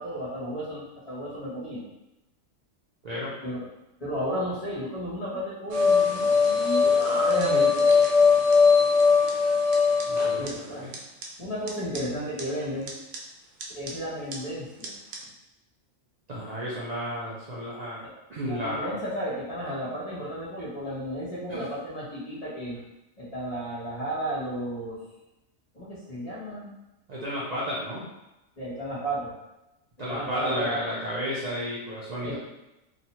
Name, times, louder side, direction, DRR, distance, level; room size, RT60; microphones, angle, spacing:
voice 1, 0.0-1.8 3.4-3.6 4.0-8.0 10.4-10.9 11.4-12.9 13.7-14.9 18.4-22.8 23.2-25.0 25.7-26.7 28.6-29.3 30.1-30.8 32.2-32.4, equal, 35° left, -8 dB, 0.8 m, -33 dB
sound 1, 5.7-10.5 10.9-11.0 11.2-11.3 11.7-11.8 12.0-12.1 12.4-12.5 12.9-13.2 13.6-13.9 14.3-14.4 14.8-14.9 15.1-15.2, left 5 dB, 90° right, 1.0 m, -20 dB
voice 2, 10.1-10.9 16.3-18.0 18.3-19.0 21.5-21.7 27.1-28.0 30.0-32.4, equal, 60° right, -7 dB, 0.4 m, -32 dB
3.0 x 2.1 x 2.8 m, 0.95 s
omnidirectional pair, 1.4 m